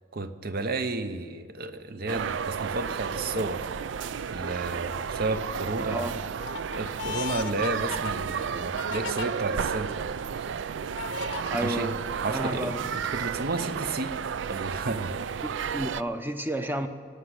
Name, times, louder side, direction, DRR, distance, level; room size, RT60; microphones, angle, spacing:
voice 1, 0.1-3.7 4.2-6.2 6.8-10.0 11.6-11.9 12.2-14.1 14.5-15.1 15.6-15.7, right 2 dB, 50° right, 10 dB, 0.8 m, -32 dB
sound 1, 2.1-16.0, right 6 dB, 75° right, 0.4 m, -32 dB
sound 2, 3.9-4.4 4.9-5.5 6.0-9.3 9.9-10.0 11.0-11.5, left 7 dB, 75° left, 0.5 m, -37 dB
voice 2, 11.5-12.0 12.3-12.8 15.4-16.9, right 1 dB, 10° right, 7 dB, 0.7 m, -31 dB
18.0 x 6.2 x 9.8 m, 2.1 s
head